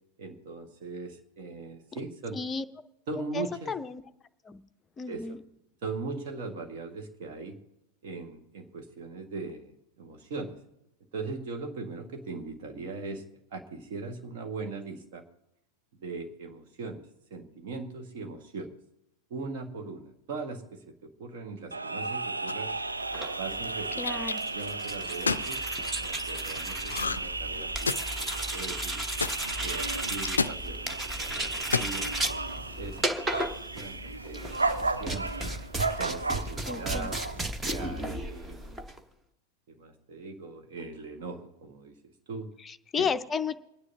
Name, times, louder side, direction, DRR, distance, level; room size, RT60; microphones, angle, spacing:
voice 1, 0.2-2.4 3.1-3.7 5.1-5.4 5.8-7.6 8.0-10.6 11.1-13.2 13.5-15.2 16.0-17.1 17.3-18.7 19.3-22.7 23.1-24.2 24.5-25.6 26.0-29.0 29.6-32.4 32.8-34.0 34.2-35.5 36.0-37.2 37.7-38.9 39.7-42.5 43.0-43.1, right 3 dB, 50° right, 3 dB, 1.7 m, -40 dB
voice 2, 2.3-2.6 3.3-4.0 4.4-4.6 5.0-5.4 24.0-24.4 36.7-37.1 42.6-43.6, left 5 dB, 20° left, 9 dB, 0.6 m, -32 dB
sound 1, 21.7-37.4, right 3 dB, 80° right, 0.4 m, -34 dB
sound 2, 22.5-22.8 23.6-24.3 25.1-25.5 26.9-27.3 27.6-28.2 29.2-29.4 30.2-30.6 31.6-31.9, left 4 dB, 75° left, 0.3 m, -29 dB
sound 3, 23.0-39.0, right 1 dB, 15° right, 0.9 m, -35 dB
28.0 x 9.8 x 2.8 m, 0.87 s
figure-of-eight pair, 90°, 0 cm